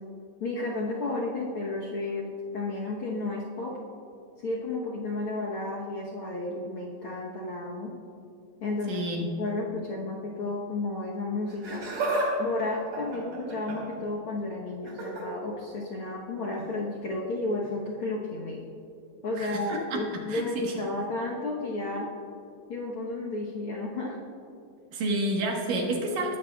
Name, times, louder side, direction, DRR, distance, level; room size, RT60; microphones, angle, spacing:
voice 1, 0.4-2.3 2.5-3.8 4.4-7.9 8.6-9.0 9.4-11.8 12.4-18.6 19.2-22.1 22.7-24.2, left 2 dB, 70° left, -3 dB, 1.3 m, -32 dB
voice 2, 8.9-9.3 19.4-20.0 20.3-20.7 24.9-26.4, right 2 dB, 70° right, 0 dB, 3.0 m, -30 dB
Laughter, 11.5-12.3 12.6-14.0 14.8-15.2 16.5-16.7 17.6-17.7, right 2 dB, 55° right, 3.8 m, -31 dB
21.0 x 13.0 x 2.3 m, 2.6 s
omnidirectional pair, 4.0 m